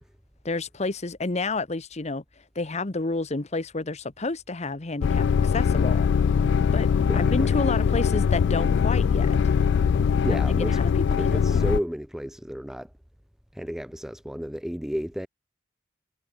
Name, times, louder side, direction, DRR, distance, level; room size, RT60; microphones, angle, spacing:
voice 1, 0.4-2.2 2.5-6.1 6.7-6.9 7.1-9.4 10.3-10.9 11.3-11.6, left 3 dB, 35° left, 1.0 m, -30 dB
sound 1, 5.0-11.8, left 6 dB, 60° left, 0.3 m, -22 dB
voice 2, 7.1-7.6 10.2-10.8 11.1-12.9 13.5-15.3, equal, ahead, 0.6 m, -32 dB
head